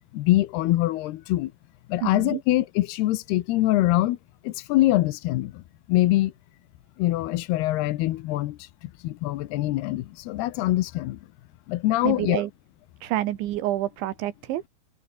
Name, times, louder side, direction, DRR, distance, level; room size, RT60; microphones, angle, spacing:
voice 1, 0.1-1.5 1.9-4.2 4.4-5.6 5.9-6.3 7.0-11.2 11.7-12.4, left 16 dB, 75° left, 2.8 m, -24 dB
voice 2, 2.0-2.4 12.0-12.5 13.0-14.6, right 14 dB, 90° right, 3.9 m, -28 dB
omnidirectional pair, 5.1 m